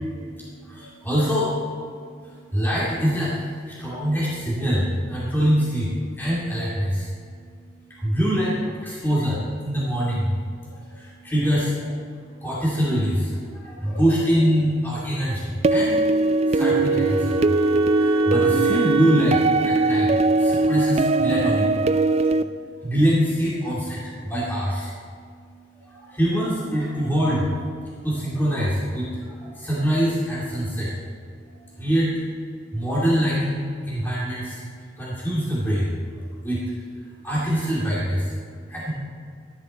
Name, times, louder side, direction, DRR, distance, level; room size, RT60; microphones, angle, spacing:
voice 1, 0.0-1.6 2.2-7.1 7.9-10.3 10.6-12.0 12.4-16.0 16.5-17.5 17.9-21.8 22.8-24.9 25.8-27.7 28.0-30.9 31.5-32.1 32.7-34.6 35.0-36.0 36.4-36.6 37.0-38.3 38.7-38.9, equal, 10° left, -8 dB, 2.5 m, -24 dB
sound 1, 15.6-22.4, right 3 dB, 35° right, 0.3 m, -20 dB
Wind instrument woodwind instrument, 16.0-21.0, right 1 dB, 85° right, 1.4 m, -33 dB
14.0 x 10.0 x 4.2 m, 2.3 s
head